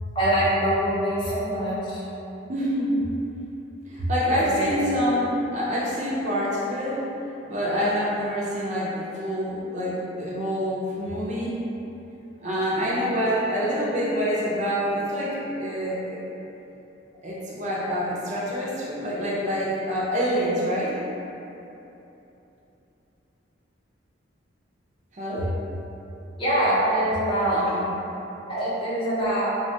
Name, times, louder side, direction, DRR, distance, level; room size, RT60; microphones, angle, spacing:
voice 1, 0.1-2.0 4.3-4.8 26.4-27.7 28.5-29.5, right 1 dB, 25° left, -9 dB, 0.6 m, -24 dB
voice 2, 2.5-3.1 3.9-7.0 7.5-11.6 12.4-16.2 17.2-21.0 25.1-25.5 27.5-27.9, equal, 35° right, -6 dB, 0.4 m, -26 dB
3.2 x 2.1 x 2.7 m, 3.0 s
head